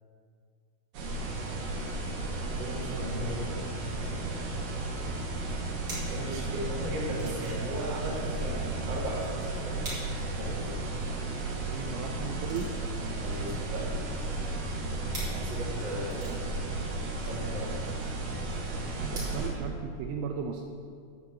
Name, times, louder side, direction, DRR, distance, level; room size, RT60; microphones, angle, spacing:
sound 1, 0.9-19.5, right 2 dB, 60° right, 2.6 m, -34 dB
voice 1, 2.6-3.6 6.1-9.9 10.3-10.9 13.1-13.9 15.3-16.4 17.2-18.0, right 1 dB, 45° right, -5 dB, 1.5 m, -37 dB
sound 2, 5.9-19.3, right 2 dB, 30° right, 3.0 m, -46 dB
voice 2, 11.7-12.7 19.0-20.6, right 6 dB, 80° right, 4 dB, 2.8 m, -36 dB
11.0 x 5.9 x 7.3 m, 2.2 s
omnidirectional pair, 5.7 m